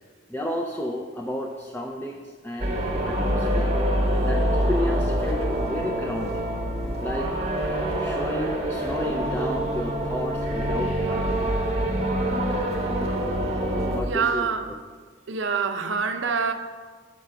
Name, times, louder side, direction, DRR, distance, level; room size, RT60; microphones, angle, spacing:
voice 1, 0.3-2.8 3.1-3.7 4.2-6.5 7.0-7.3 8.0-11.3 13.9-14.8, equal, 10° left, -1 dB, 0.4 m, -32 dB
sound 1, 2.6-14.0, right 1 dB, 35° right, 0.9 m, -25 dB
voice 2, 14.0-14.8 15.3-16.5, right 5 dB, 70° right, 7 dB, 0.6 m, -26 dB
7.7 x 4.9 x 5.6 m, 1.5 s
head